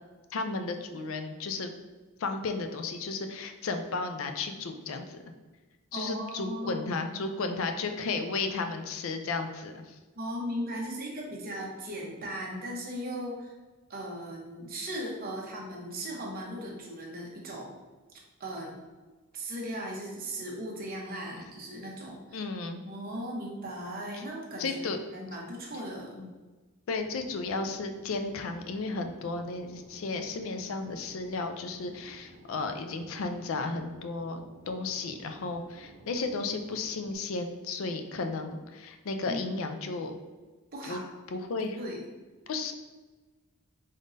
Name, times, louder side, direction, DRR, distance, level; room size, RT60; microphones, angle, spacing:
voice 1, 0.3-1.7 2.2-5.2 5.9-10.0 22.3-22.8 24.6-25.0 26.1-26.3 26.9-40.2 40.9-41.0 41.3-41.8 42.5-42.7, left 3 dB, 65° left, 6 dB, 0.4 m, -34 dB
voice 2, 5.9-7.1 10.2-13.5 13.9-17.7 18.4-18.8 19.3-22.5 22.8-24.8 25.1-26.1 39.3-39.4 40.7-41.0 41.8-42.1, equal, 45° right, -2 dB, 0.9 m, -37 dB
Fixed-wing aircraft airplane, 27.0-37.1, right 1 dB, 85° right, 0.6 m, -54 dB
3.7 x 3.6 x 2.6 m, 1.3 s
head